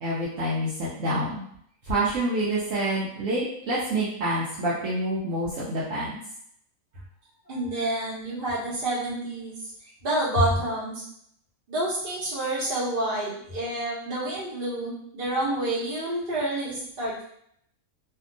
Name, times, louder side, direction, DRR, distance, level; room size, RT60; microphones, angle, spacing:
voice 1, 0.0-1.4 1.9-6.2, right 1 dB, 65° right, -8 dB, 1.0 m, -27 dB
voice 2, 7.5-9.5 10.0-11.0 11.7-17.2, right 1 dB, 40° right, -6 dB, 1.1 m, -29 dB
2.7 x 2.3 x 2.5 m, 0.69 s
omnidirectional pair, 1.5 m